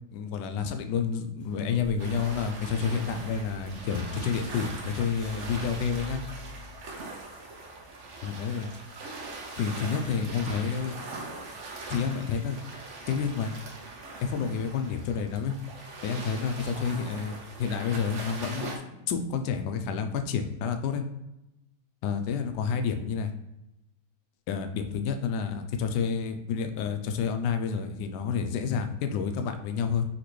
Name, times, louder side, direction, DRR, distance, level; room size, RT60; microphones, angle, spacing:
voice 1, 0.1-6.2 8.2-8.7 9.6-10.9 11.9-12.6 13.1-13.5 14.2-15.5 16.0-21.0 22.0-23.3 24.5-30.0, left 6 dB, 75° left, 7 dB, 1.2 m, -29 dB
sound 1, 1.4-7.3, right 2 dB, 45° left, 1.2 m, -45 dB
sound 2, 2.0-18.8, right 2 dB, 55° right, 0.9 m, -41 dB
5.0 x 3.4 x 3.1 m, 0.93 s
omnidirectional pair, 1.9 m